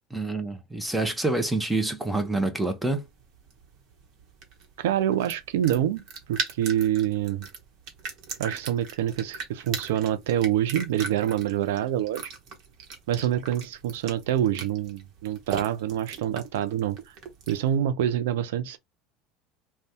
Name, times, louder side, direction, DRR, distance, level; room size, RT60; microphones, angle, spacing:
voice 1, 0.1-3.1, right 2 dB, 10° right, 0.6 m, -27 dB
sound 1, 2.9-17.7, right 5 dB, 60° right, 1.0 m, -40 dB
voice 2, 4.8-6.0 6.3-7.5 8.4-12.3 13.1-17.0 17.5-18.8, right 11 dB, 75° right, 0.4 m, -26 dB
2.6 x 2.2 x 3.4 m
hypercardioid pair, 75°, 0 cm